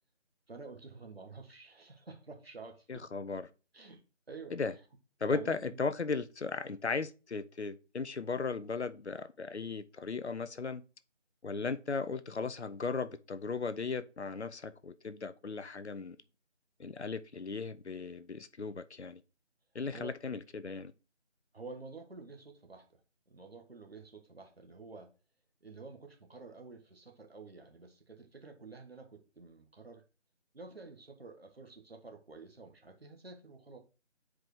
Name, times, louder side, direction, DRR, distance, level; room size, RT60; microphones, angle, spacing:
voice 1, 0.5-3.1 3.7-4.6 5.2-5.8 19.9-20.2 21.5-25.1 25.6-30.0 30.5-33.8, right 4 dB, 55° right, 1.5 m, -50 dB
voice 2, 2.9-3.5 4.5-4.7 5.2-10.8 11.4-16.2 16.8-19.2 19.7-20.9, left 4 dB, 65° left, 0.7 m, -36 dB
9.0 x 4.7 x 3.1 m
figure-of-eight pair, 165°, 36 cm